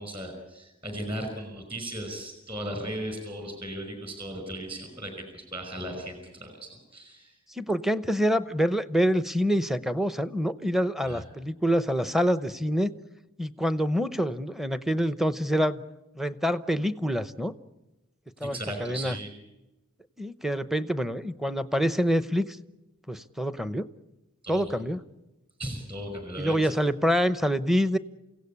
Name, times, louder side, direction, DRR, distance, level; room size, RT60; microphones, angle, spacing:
voice 1, 0.0-7.4 11.0-11.2 18.4-19.3 24.4-24.7 25.6-26.7, right 1 dB, 25° right, 5 dB, 5.4 m, -37 dB
voice 2, 7.6-12.9 13.4-15.8 16.2-17.5 18.4-19.2 20.2-22.6 23.1-23.8 24.5-25.0 26.4-28.0, equal, ahead, 12 dB, 0.8 m, -26 dB
28.5 x 17.0 x 8.5 m, 1.0 s
head